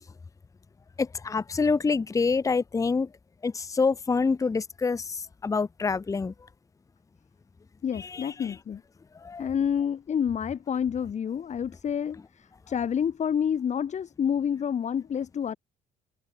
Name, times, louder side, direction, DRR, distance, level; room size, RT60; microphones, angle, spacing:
voice 1, 1.0-3.1 3.4-5.0 5.4-6.3 8.0-8.3 9.2-9.4, left 4 dB, 20° left, 0.9 m, -26 dB
voice 2, 7.8-8.8 9.4-12.2 12.7-15.6, left 8 dB, 45° left, 3.6 m, -28 dB
cardioid pair, 110°, 17 cm